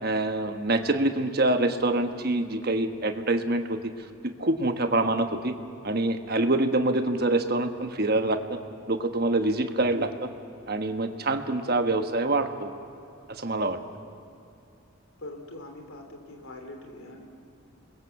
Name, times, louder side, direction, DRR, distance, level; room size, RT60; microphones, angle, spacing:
voice 1, 0.0-3.8 4.2-5.6 5.8-8.6 8.9-10.3 10.7-12.7 13.3-13.8, right 2 dB, 45° right, 7 dB, 1.3 m, -25 dB
voice 2, 15.2-17.2, left 2 dB, 75° left, 3 dB, 3.1 m, -43 dB
28.0 x 22.0 x 7.2 m, 2.6 s
head